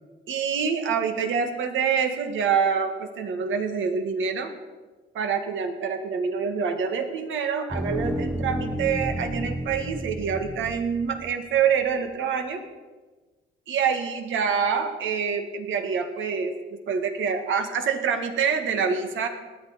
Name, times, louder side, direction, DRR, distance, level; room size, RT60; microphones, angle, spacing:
voice 1, 0.3-4.5 5.1-12.6 13.7-19.3, right 6 dB, 75° right, 6 dB, 1.8 m, -26 dB
sound 1, 7.7-11.6, equal, 5° right, 0.9 m, -31 dB
18.5 x 11.0 x 5.1 m, 1.3 s
cardioid pair, 90°, 20 cm